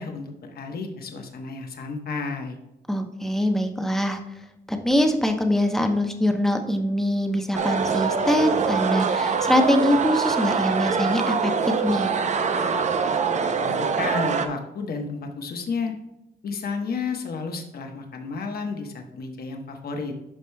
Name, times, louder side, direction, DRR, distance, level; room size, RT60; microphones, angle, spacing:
voice 1, 0.0-2.6 13.6-15.9 16.4-20.1, left 4 dB, 60° left, 4 dB, 1.1 m, -32 dB
voice 2, 2.9-4.2 4.7-12.1, left 1 dB, ahead, 4 dB, 0.8 m, -23 dB
sound 1, 7.5-14.5, right 5 dB, 40° right, 0.6 m, -24 dB
12.0 x 5.0 x 2.2 m, 0.92 s
cardioid pair, 130°, 18 cm